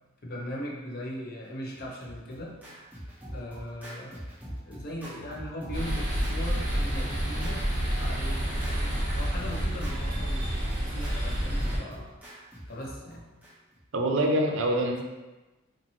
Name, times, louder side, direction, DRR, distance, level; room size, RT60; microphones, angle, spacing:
voice 1, 0.2-2.5 3.3-4.2 4.7-8.6 9.2-12.1 12.7-13.2, equal, 50° left, -3 dB, 0.6 m, -39 dB
Scratching (performance technique), 1.7-13.8, equal, 10° right, 0.6 m, -42 dB
sound 1, 5.7-11.8, equal, 40° right, 0.8 m, -29 dB
voice 2, 13.9-15.0, right 1 dB, 80° right, 2 dB, 0.4 m, -25 dB
2.7 x 2.5 x 2.7 m, 1.1 s
head